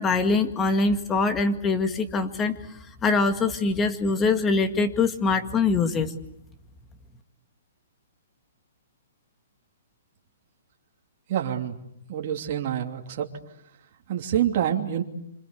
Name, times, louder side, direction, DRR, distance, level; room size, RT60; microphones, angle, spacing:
voice 1, 0.0-2.6 3.0-6.1, left 4 dB, 15° left, 8 dB, 1.9 m, -23 dB
voice 2, 11.3-11.7 12.1-13.3 14.1-15.0, right 10 dB, 45° right, 2 dB, 2.9 m, -26 dB
27.0 x 26.5 x 8.3 m, 0.79 s
hypercardioid pair, 155°, 0 cm